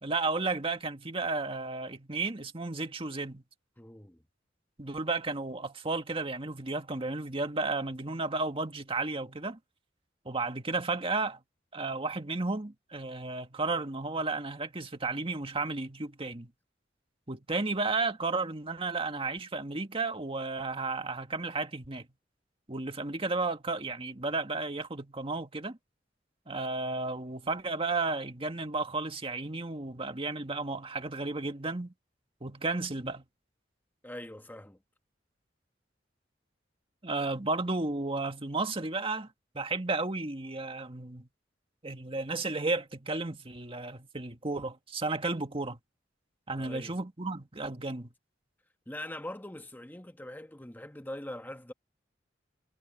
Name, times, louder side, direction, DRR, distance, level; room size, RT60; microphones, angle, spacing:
voice 1, 0.0-3.4 4.8-9.6 10.3-11.4 11.7-16.5 17.3-22.1 22.7-25.8 26.5-31.9 32.4-33.2 37.0-39.3 39.5-41.3 41.8-45.8 46.5-48.1, right 3 dB, 30° right, 1.8 m, -33 dB
voice 2, 3.8-4.2 34.0-34.8 46.6-47.0 48.9-51.7, left 1 dB, 10° left, 1.3 m, -42 dB
head